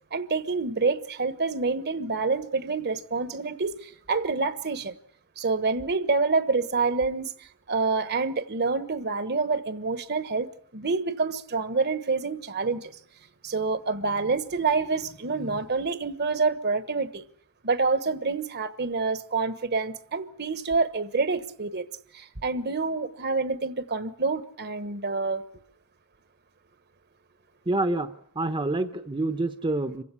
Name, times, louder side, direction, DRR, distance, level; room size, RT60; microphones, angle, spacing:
voice 1, 0.1-4.9 5.4-12.9 13.4-17.2 17.6-21.9 22.1-25.4, right 4 dB, 50° right, 1.2 m, -27 dB
voice 2, 27.7-30.0, right 2 dB, 25° right, 0.9 m, -27 dB
26.5 x 16.0 x 9.7 m
head